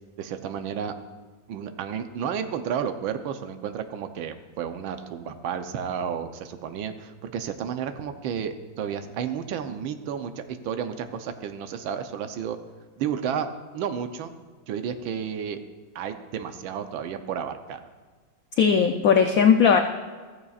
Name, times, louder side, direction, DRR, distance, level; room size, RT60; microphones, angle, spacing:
voice 1, 0.2-0.9 1.5-12.6 13.0-13.5 13.7-14.3 14.7-15.6 15.9-17.8, right 8 dB, 85° right, 8 dB, 1.5 m, -32 dB
voice 2, 18.6-19.8, left 7 dB, 75° left, 5 dB, 0.8 m, -18 dB
14.5 x 14.0 x 2.4 m, 1.4 s
omnidirectional pair, 2.1 m